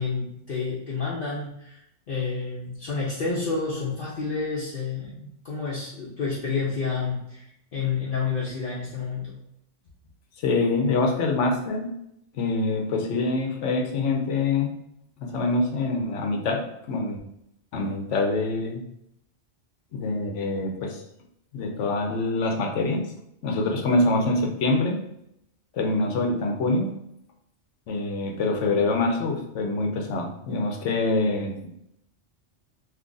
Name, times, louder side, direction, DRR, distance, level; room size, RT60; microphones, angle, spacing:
voice 1, 0.0-1.8 2.1-9.4, left 4 dB, 55° left, -6 dB, 0.8 m, -29 dB
voice 2, 10.4-11.9 12.3-14.7 15.2-17.2 17.7-18.8 19.9-21.0 21.5-23.1 23.4-25.0 25.7-26.9 27.9-31.7, left 2 dB, 85° left, 2 dB, 1.0 m, -25 dB
2.9 x 2.4 x 3.8 m, 0.78 s
omnidirectional pair, 1.2 m